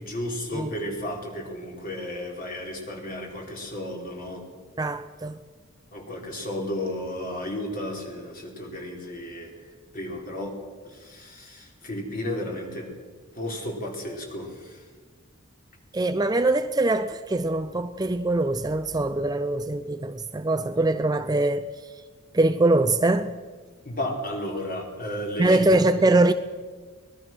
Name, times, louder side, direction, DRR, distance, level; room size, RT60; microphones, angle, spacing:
voice 1, 0.0-4.5 5.9-9.5 9.9-10.5 10.8-12.9 13.3-14.8 23.8-25.6, left 1 dB, 40° left, 4.7 m, -33 dB
voice 2, 4.8-5.4 15.9-21.7 22.3-23.4 25.4-26.3, right 2 dB, 20° right, 0.5 m, -23 dB
24.0 x 19.5 x 6.3 m
head